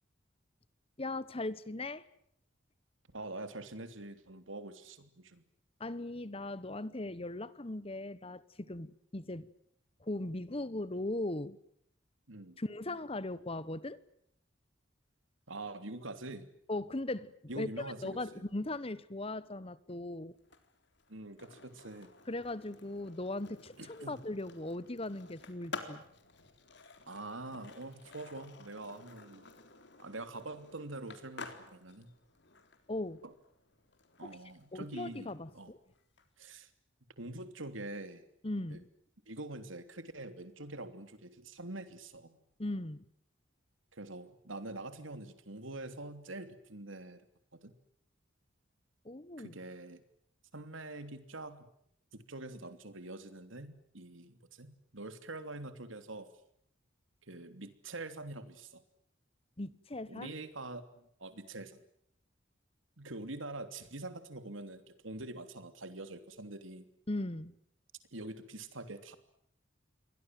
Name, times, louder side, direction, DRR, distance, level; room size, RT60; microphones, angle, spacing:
voice 1, 1.0-2.0 5.8-9.5 10.0-11.6 12.6-14.0 16.7-20.4 22.3-26.0 32.9-33.2 34.2-34.4 34.7-35.8 38.4-38.8 42.6-43.0 49.0-49.5 59.6-60.3 67.1-67.6, left 2 dB, 30° left, 1.1 m, -39 dB
voice 2, 3.1-5.4 12.3-12.6 15.5-16.5 17.5-18.4 21.1-22.1 23.8-24.2 27.1-29.5 30.0-32.1 33.2-33.3 34.2-35.7 36.4-36.7 37.2-38.2 38.7-38.8 39.3-42.4 43.9-47.2 47.5-47.7 49.4-50.0 50.5-51.7 52.1-56.3 57.2-58.8 60.1-61.8 63.0-66.9 68.1-69.2, right 2 dB, 80° right, 3.1 m, -45 dB
Skateboard, 20.4-36.2, left 3 dB, 60° left, 3.8 m, -52 dB
29.0 x 23.5 x 7.7 m
head